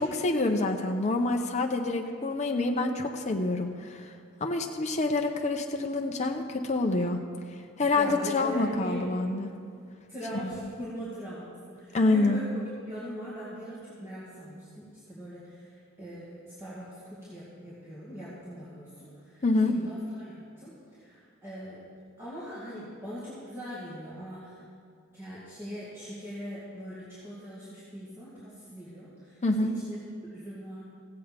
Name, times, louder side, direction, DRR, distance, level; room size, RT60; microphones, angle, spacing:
voice 1, 0.0-4.1 4.4-7.2 7.8-9.5 10.3-10.7 11.9-12.4 19.4-19.7 29.4-29.7, left 2 dB, 35° left, 2 dB, 0.7 m, -27 dB
voice 2, 7.9-9.1 10.1-12.6 12.9-21.8 22.2-24.6 25.1-30.0 30.2-30.8, equal, 10° right, -10 dB, 2.1 m, -41 dB
15.5 x 7.7 x 5.1 m, 2.2 s
head